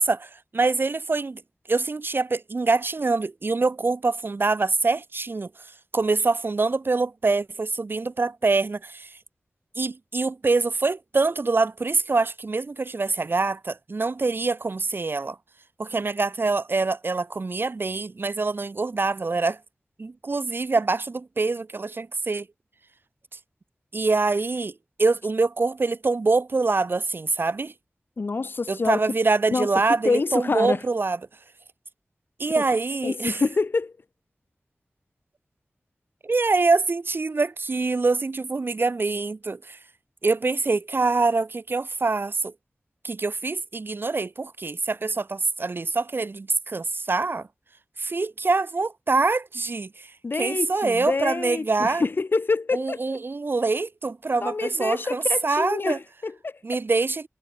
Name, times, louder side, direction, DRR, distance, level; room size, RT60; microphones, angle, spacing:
voice 1, 0.0-1.4 1.7-5.5 5.9-9.1 9.8-15.4 15.8-19.6 20.0-22.4 23.9-24.7 25.0-27.7 28.7-31.2 32.4-33.4 36.2-39.8 40.2-42.5 43.0-47.5 48.0-49.9 50.4-52.0 52.7-56.0 56.6-57.3, right 3 dB, 60° right, 1.4 m, -24 dB
voice 2, 28.2-29.0 29.5-29.7 30.0-30.8 32.6-32.7 33.0-33.9 50.2-53.2 54.4-56.6, left 3 dB, 55° left, 0.5 m, -26 dB
wide cardioid pair, 60°, 4 cm